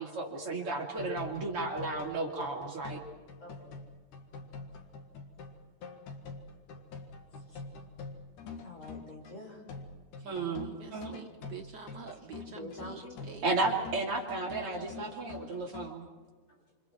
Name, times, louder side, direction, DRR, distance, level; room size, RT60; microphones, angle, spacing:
voice 1, 0.0-3.0 10.3-11.2 13.4-16.0, right 3 dB, 45° right, 0 dB, 3.2 m, -33 dB
sound 1, 1.0-9.4 9.7-15.9, left 4 dB, 75° left, 3.3 m, -46 dB
voice 2, 3.4-3.8 6.7-6.9 7.4-7.6 8.6-9.6 12.5-13.3 14.7-14.9, left 1 dB, 40° left, -2 dB, 6.7 m, -47 dB
voice 3, 10.2-13.5, right 6 dB, 85° right, 4 dB, 0.9 m, -47 dB
28.0 x 28.0 x 4.6 m, 1.4 s
omnidirectional pair, 3.5 m